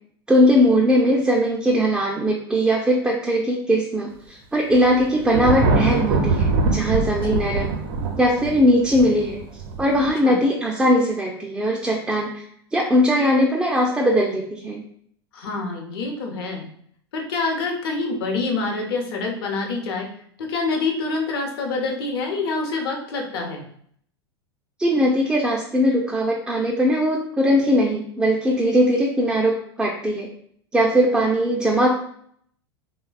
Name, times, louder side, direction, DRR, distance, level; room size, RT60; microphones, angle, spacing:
voice 1, 0.3-7.7 8.2-9.4 9.8-12.4 12.7-14.8 24.8-30.3 30.7-31.9, equal, 5° right, -1 dB, 0.3 m, -20 dB
Thunder, 4.7-10.1, right 3 dB, 55° right, 0.5 m, -23 dB
voice 2, 15.3-16.7 17.1-20.1 20.4-23.6, left 3 dB, 60° left, 2 dB, 0.7 m, -26 dB
3.2 x 2.1 x 2.3 m, 0.64 s
figure-of-eight pair, 90°, 14 cm